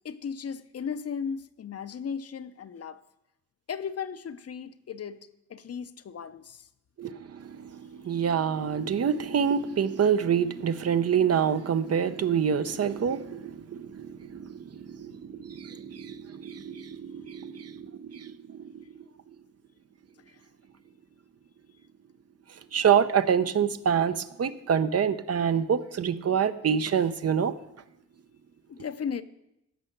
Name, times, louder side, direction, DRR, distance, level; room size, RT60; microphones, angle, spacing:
voice 1, 0.0-3.0 3.7-6.7 28.7-29.2, left 6 dB, 55° left, 0.7 m, -36 dB
voice 2, 7.0-19.0 22.5-27.6, right 7 dB, 55° right, 0.7 m, -27 dB
14.5 x 5.6 x 7.8 m
cardioid pair, 90°, 29 cm